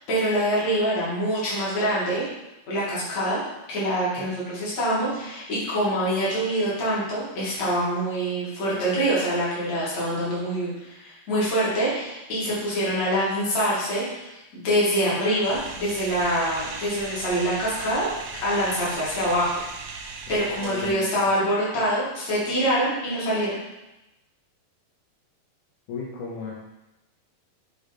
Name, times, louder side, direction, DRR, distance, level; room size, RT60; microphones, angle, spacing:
voice 1, 0.0-2.3 2.7-3.4 3.7-18.1 18.4-19.5 19.8-19.9 20.3-23.6, equal, 50° left, -8 dB, 3.0 m, -25 dB
sound 1, 15.4-20.9, right 4 dB, 75° right, 1.8 m, -37 dB
voice 2, 20.3-21.3 25.9-26.5, left 4 dB, 80° left, -4 dB, 2.7 m, -35 dB
8.2 x 3.4 x 4.2 m, 0.98 s
omnidirectional pair, 4.3 m